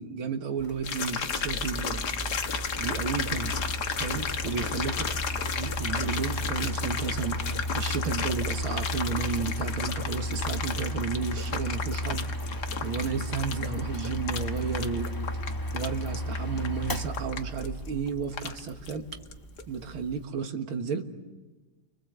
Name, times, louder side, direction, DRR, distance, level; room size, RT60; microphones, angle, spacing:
voice 1, 0.0-2.0 2.8-3.6 3.9-4.9 5.6-7.4 7.7-12.3 12.8-15.1 15.7-19.1 19.7-21.0, right 5 dB, 85° right, 6 dB, 2.5 m, -32 dB
Mechanical fan, 0.6-20.2, equal, 15° left, 0.7 m, -34 dB
sound 1, 0.8-19.3 19.6-19.7, left 6 dB, 55° left, 1.8 m, -34 dB
30.0 x 25.0 x 8.0 m, 1.2 s
omnidirectional pair, 2.3 m